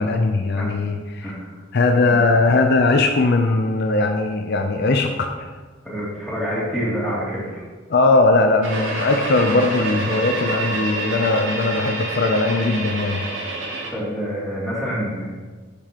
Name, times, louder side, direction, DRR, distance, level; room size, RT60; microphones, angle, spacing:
voice 1, 0.0-1.3 1.7-5.5 7.9-13.2, left 3 dB, 55° left, 5 dB, 0.5 m, -19 dB
voice 2, 1.2-1.6 2.0-2.2 5.8-7.6 13.9-15.4, equal, ahead, -8 dB, 2.6 m, -27 dB
sound 1, 8.6-13.9, right 2 dB, 75° right, 1.7 m, -27 dB
10.5 x 6.9 x 2.9 m, 1.4 s
head